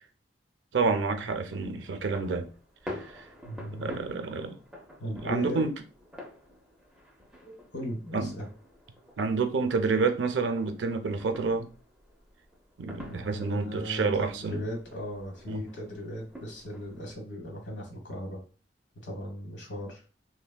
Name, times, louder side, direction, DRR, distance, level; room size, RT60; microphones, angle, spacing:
voice 1, 0.7-2.5 3.0-3.1 3.7-4.5 5.2-5.7 8.1-8.3 9.2-11.7 12.8-14.6 15.5-15.6, right 4 dB, 80° right, 0.4 m, -28 dB
sound 1, 0.8-17.1, left 1 dB, 5° right, 0.5 m, -48 dB
voice 2, 3.4-3.9 5.0-5.7 7.5-8.5 13.1-18.4 19.0-20.0, equal, 80° left, 1.0 m, -37 dB
3.3 x 2.1 x 2.2 m
head